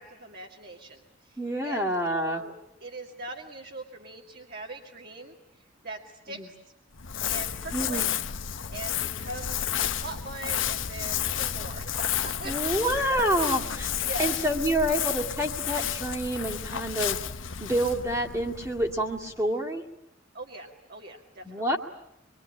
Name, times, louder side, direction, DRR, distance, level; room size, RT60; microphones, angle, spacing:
voice 1, 0.0-6.6 7.2-8.1 8.7-12.7 13.1-13.5 14.0-14.4 20.3-21.6, right 2 dB, 50° right, 1 dB, 2.2 m, -41 dB
voice 2, 1.4-2.4 6.3-6.5 7.7-8.1 12.4-13.9 14.2-17.2 17.6-19.8 21.4-21.8, right 1 dB, 15° right, -3 dB, 2.2 m, -28 dB
Crumpling crinkling, 6.9-19.4, left 9 dB, 70° left, 1.0 m, -31 dB
25.0 x 23.5 x 10.0 m, 0.82 s
head